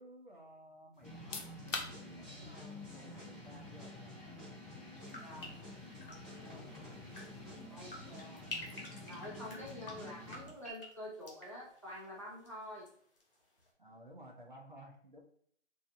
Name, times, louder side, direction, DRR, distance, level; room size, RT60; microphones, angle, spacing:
voice 1, 0.0-4.2 6.4-6.8 7.6-7.9 13.8-15.2, equal, 40° right, -1 dB, 0.5 m, -56 dB
sound 1, 1.0-10.7, left 1 dB, 15° right, 0.8 m, -49 dB
sound 2, 1.1-13.7, left 4 dB, 80° left, 0.8 m, -52 dB
sound 3, 5.0-12.9 13.2-13.7, left 2 dB, 45° left, 1.0 m, -51 dB
voice 2, 5.2-5.5 6.1-6.7 7.7-8.4 9.0-12.9, left 1 dB, 25° left, -4 dB, 0.6 m, -48 dB
3.1 x 2.7 x 2.5 m, 0.62 s
hypercardioid pair, 175°, 37 cm